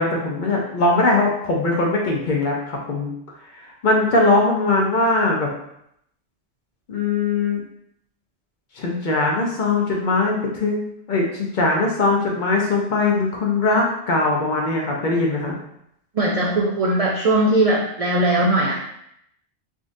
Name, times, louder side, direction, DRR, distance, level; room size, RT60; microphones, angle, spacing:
voice 1, 0.0-3.1 3.5-5.5 6.9-7.6 8.8-15.6, left 3 dB, 55° left, -1 dB, 0.6 m, -21 dB
voice 2, 16.2-18.8, right 1 dB, 65° right, -3 dB, 0.3 m, -19 dB
3.7 x 2.4 x 2.5 m, 0.75 s
omnidirectional pair, 1.2 m